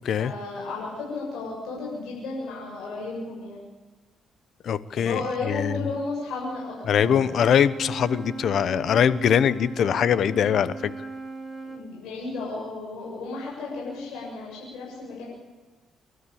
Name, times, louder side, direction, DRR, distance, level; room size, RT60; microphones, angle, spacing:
voice 1, 0.0-3.6 5.0-7.3 11.6-15.2, left 3 dB, 85° left, -3 dB, 7.1 m, -33 dB
voice 2, 4.6-5.8 6.9-10.9, left 8 dB, 65° left, 16 dB, 1.0 m, -22 dB
Wind instrument woodwind instrument, 6.9-11.9, right 3 dB, 15° right, 3.5 m, -38 dB
27.5 x 13.0 x 8.7 m, 1.3 s
cardioid pair, 90°, 0 cm